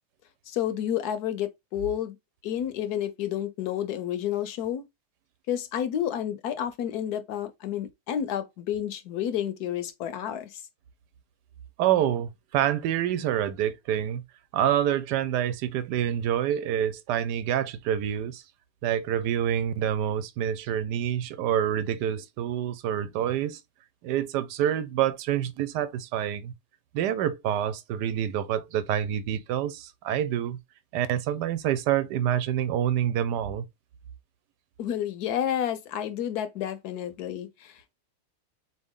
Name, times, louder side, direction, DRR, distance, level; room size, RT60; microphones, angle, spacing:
voice 1, 0.5-2.2 2.4-4.9 5.5-10.6 34.8-37.9, left 10 dB, 75° left, 1.1 m, -30 dB
voice 2, 11.8-14.2 14.5-18.4 18.8-23.6 24.0-26.5 26.9-30.6 30.9-33.6, right 10 dB, 85° right, 1.2 m, -27 dB
4.2 x 3.1 x 3.5 m
omnidirectional pair, 1.8 m